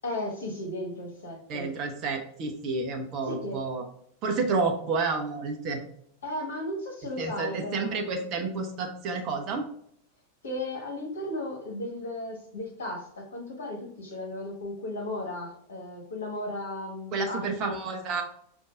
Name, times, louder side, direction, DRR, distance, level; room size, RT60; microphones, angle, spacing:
voice 1, 0.0-1.7 3.2-3.6 6.2-8.0 10.4-17.7, left 1 dB, 65° left, 1 dB, 1.2 m, -35 dB
voice 2, 1.5-3.8 4.2-5.8 7.2-9.7 17.1-18.2, right 4 dB, 35° right, 3 dB, 0.7 m, -30 dB
5.2 x 2.6 x 2.4 m, 0.69 s
figure-of-eight pair, 90°, 0 cm